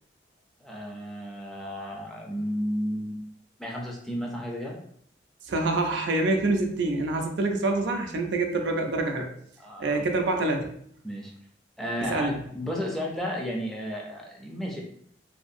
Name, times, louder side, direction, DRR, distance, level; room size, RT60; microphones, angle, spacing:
voice 1, 0.6-3.3 3.6-4.8 9.6-10.2 11.0-11.3 11.8-14.8, equal, ahead, -2 dB, 0.4 m, -33 dB
voice 2, 5.5-9.3 9.8-10.7 12.1-12.3, right 2 dB, 65° right, 4 dB, 0.4 m, -26 dB
2.7 x 2.5 x 2.5 m, 0.66 s
head